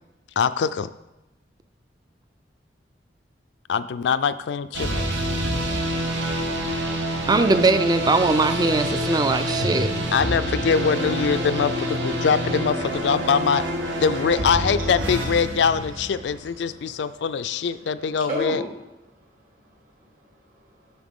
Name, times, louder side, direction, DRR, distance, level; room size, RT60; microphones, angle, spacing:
voice 1, 0.4-0.9 3.7-5.1 10.1-13.6 14.0-18.6, left 6 dB, 70° left, 13 dB, 0.3 m, -23 dB
sound 1, 4.7-16.6, equal, 75° right, 1.0 m, -27 dB
voice 2, 7.3-9.9, right 3 dB, 20° right, 10 dB, 0.4 m, -20 dB
voice 3, 16.6-18.7 19.1-20.9, left 1 dB, 50° right, -3 dB, 2.2 m, -37 dB
8.7 x 6.4 x 3.6 m, 0.98 s
head